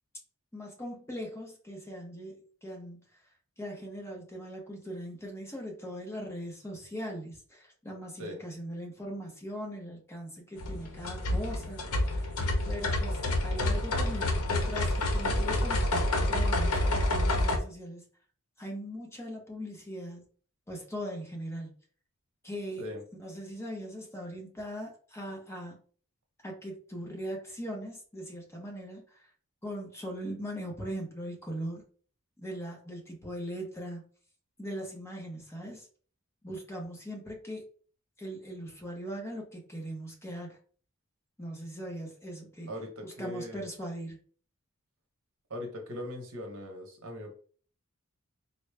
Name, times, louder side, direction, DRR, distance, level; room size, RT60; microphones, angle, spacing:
voice 1, 0.5-3.2 3.6-12.4 12.7-18.0 18.6-20.2 20.7-21.7 22.4-22.9 23.2-25.8 26.4-29.3 29.6-31.8 32.4-34.0 34.6-35.9 36.4-37.6 38.2-40.6 41.4-42.7 43.0-44.2, equal, 10° left, 0 dB, 0.8 m, -40 dB
sound 1, 10.6-17.6, left 1 dB, 80° left, 0.8 m, -28 dB
voice 2, 42.7-43.7 45.5-47.3, left 1 dB, 65° right, 3 dB, 0.9 m, -40 dB
3.8 x 2.2 x 3.2 m, 0.44 s
head